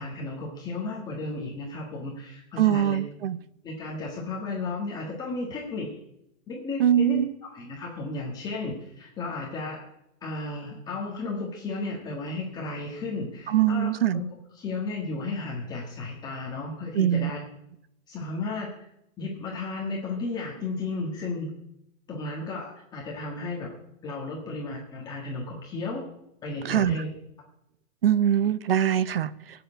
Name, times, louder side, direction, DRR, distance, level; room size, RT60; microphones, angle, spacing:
voice 1, 0.0-3.0 3.6-6.0 6.5-9.9 10.2-14.3 14.5-17.4 18.1-18.9 19.2-21.5 22.1-23.7 24.0-26.1 26.4-27.1, left 3 dB, 10° left, 1.5 m, -34 dB
voice 2, 2.6-3.4 6.8-7.3 13.5-14.2 16.9-17.3 26.6-27.0 28.0-29.3, right 10 dB, 45° right, 0.7 m, -22 dB
17.5 x 8.0 x 9.9 m
hypercardioid pair, 180°, 41 cm